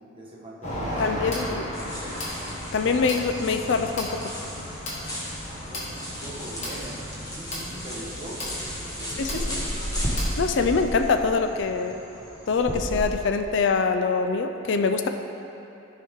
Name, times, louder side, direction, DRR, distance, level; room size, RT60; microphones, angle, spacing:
voice 1, 0.1-1.9 5.5-9.6, right 1 dB, 25° right, -5 dB, 1.3 m, -41 dB
sound 1, 0.6-10.8, equal, 35° left, 1.5 m, -35 dB
voice 2, 1.0-1.7 2.7-4.3 9.2-9.3 10.4-12.0 12.5-15.1, left 4 dB, 60° left, 7 dB, 0.4 m, -24 dB
sound 2, 1.7-13.0, equal, 20° left, 1.3 m, -35 dB
14.0 x 4.7 x 3.6 m, 2.9 s
head